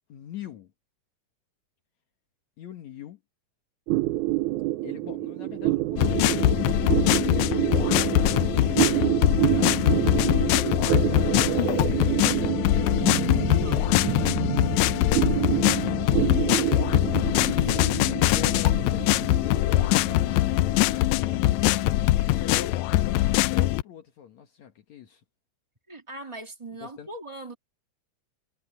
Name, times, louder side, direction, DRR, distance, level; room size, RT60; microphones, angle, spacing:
voice 1, 0.1-0.7 2.6-3.2 4.8-12.2 13.2-25.2 26.8-27.1, left 9 dB, 65° left, 2.6 m, -44 dB
sound 1, 3.9-22.6, right 19 dB, 80° right, 1.9 m, -28 dB
sound 2, 6.0-23.8, left 17 dB, 80° left, 1.7 m, -23 dB
voice 2, 13.5-13.8 25.9-27.5, right 2 dB, 20° right, 0.8 m, -40 dB
omnidirectional pair, 3.7 m